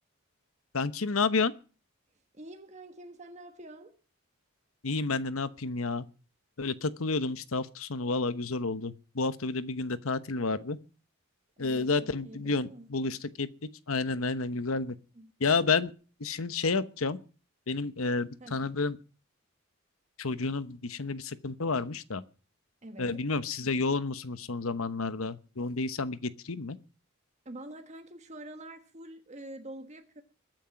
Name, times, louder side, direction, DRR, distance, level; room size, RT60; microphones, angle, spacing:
voice 1, 0.7-1.5 4.8-6.1 6.6-10.8 11.6-13.5 13.9-15.0 15.4-15.9 16.2-17.2 17.7-19.0 20.2-22.2 23.0-26.8, left 4 dB, 80° left, 1.0 m, -30 dB
voice 2, 2.3-3.9 11.6-12.9 15.1-15.3 18.4-18.6 22.8-23.2 27.4-30.2, right 1 dB, 35° right, 1.3 m, -46 dB
22.0 x 9.1 x 5.9 m
head